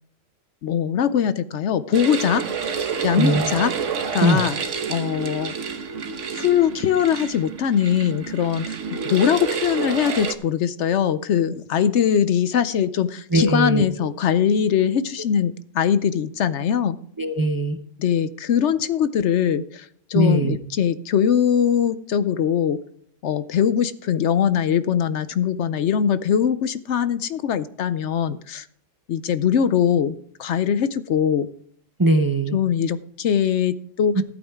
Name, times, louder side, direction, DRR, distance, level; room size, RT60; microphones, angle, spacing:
voice 1, 0.6-2.4 3.0-3.7 4.1-4.5 4.9-5.5 6.3-8.8 9.1-17.0 18.0-22.8 23.2-28.7 29.1-31.5 32.5-34.2, left 8 dB, 65° left, 13 dB, 0.9 m, -21 dB
sound 1, 1.9-10.3, right 6 dB, 70° right, 1.3 m, -29 dB
voice 2, 13.3-13.9 17.2-17.8 20.1-20.6 32.0-32.6 34.2-34.3, right 2 dB, 20° right, 7 dB, 0.5 m, -20 dB
14.0 x 8.8 x 3.5 m, 0.64 s
omnidirectional pair, 1.3 m